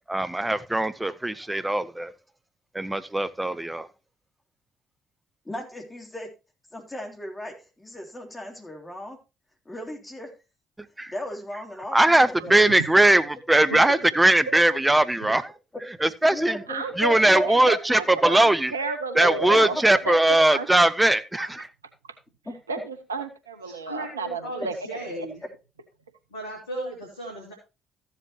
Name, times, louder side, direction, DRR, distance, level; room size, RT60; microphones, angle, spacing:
voice 1, 0.1-2.1 2.7-3.9 11.0-11.1 11.9-15.4 16.0-16.6 17.0-18.7 19.2-21.7, right 1 dB, 15° right, 0.9 m, -20 dB
voice 2, 5.5-6.3 6.7-9.2 9.7-10.3 11.1-12.8 16.3-16.8 17.2-17.7 18.2-18.3 19.2-19.6 22.5-22.6, equal, 15° left, 3.5 m, -36 dB
voice 3, 16.7-20.7 21.4-21.5 22.7-24.7 25.2-25.3, right 3 dB, 85° right, 0.7 m, -32 dB
voice 4, 23.6-25.4 26.3-27.5, right 1 dB, 80° left, 2.6 m, -36 dB
14.5 x 7.7 x 3.0 m
figure-of-eight pair, 45°, 0 cm